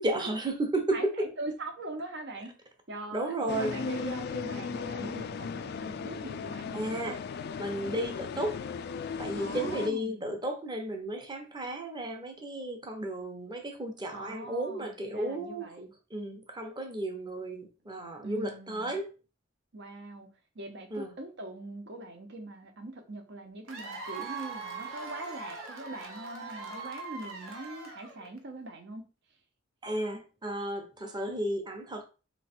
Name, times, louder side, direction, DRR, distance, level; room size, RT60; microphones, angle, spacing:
voice 1, 0.0-1.1 3.1-3.7 6.7-7.2 7.6-8.6 9.2-15.7 16.1-19.1 20.9-21.1 29.8-32.1, right 1 dB, 20° right, 0.9 m, -33 dB
voice 2, 0.9-2.5 2.9-7.0 9.4-10.3 14.1-15.9 18.2-19.0 19.7-20.3 20.5-29.0, right 2 dB, 60° right, 1.0 m, -42 dB
sound 1, 3.5-9.9, left 5 dB, 55° left, 0.3 m, -36 dB
Cheering / Applause / Crowd, 23.7-28.4, right 4 dB, 90° right, 1.0 m, -41 dB
3.2 x 3.2 x 4.3 m
head